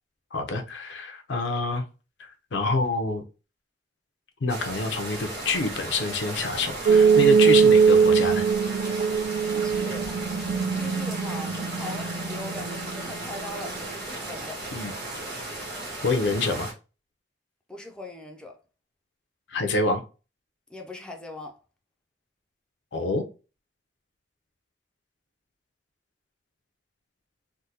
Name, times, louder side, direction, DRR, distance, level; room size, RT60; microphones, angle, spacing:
voice 1, 0.3-1.8 2.2-3.2 4.4-8.5 14.7-14.9 16.0-16.7 19.5-20.0 22.9-23.2, left 3 dB, 80° left, 0.6 m, -27 dB
sound 1, 4.5-16.7, right 2 dB, 65° right, 1.7 m, -36 dB
sound 2, 6.9-13.8, right 6 dB, 80° right, 0.3 m, -21 dB
voice 2, 9.5-10.1 10.4-14.6 17.7-18.6 20.7-21.6, left 2 dB, 5° left, 0.4 m, -40 dB
3.6 x 2.2 x 2.7 m
head